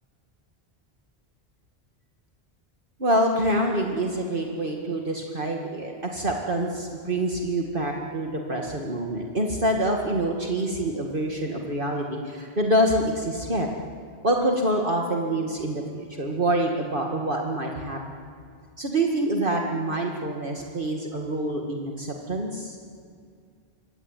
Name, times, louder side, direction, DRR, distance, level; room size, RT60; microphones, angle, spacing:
voice 1, 3.0-13.7 14.2-18.0 18.8-22.8, right 1 dB, 55° right, 0 dB, 2.4 m, -26 dB
26.0 x 24.0 x 9.2 m, 2.2 s
omnidirectional pair, 1.0 m